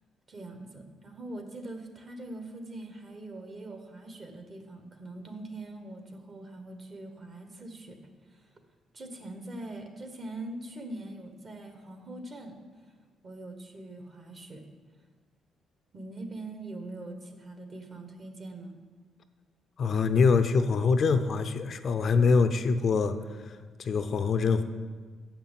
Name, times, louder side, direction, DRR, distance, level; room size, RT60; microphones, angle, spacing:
voice 1, 0.3-8.0 8.3-8.5 8.9-12.6 12.9-13.0 13.2-14.6 15.9-18.8, right 2 dB, 45° right, 5 dB, 1.3 m, -42 dB
voice 2, 19.8-23.2 23.4-24.6, left 4 dB, 55° left, 9 dB, 0.5 m, -24 dB
7.1 x 5.9 x 7.3 m, 1.5 s
cardioid pair, 90°, 0 cm